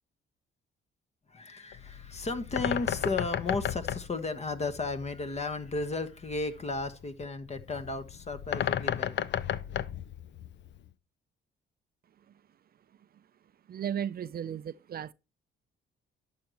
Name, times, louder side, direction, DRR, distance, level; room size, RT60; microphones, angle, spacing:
voice 1, 1.3-9.2, left 3 dB, 35° left, 1.3 m, -34 dB
Bird, 1.7-10.9, left 10 dB, 65° left, 0.7 m, -34 dB
voice 2, 13.7-15.1, right 9 dB, 50° right, 0.5 m, -35 dB
11.5 x 6.7 x 3.0 m
cardioid pair, 90°, 20 cm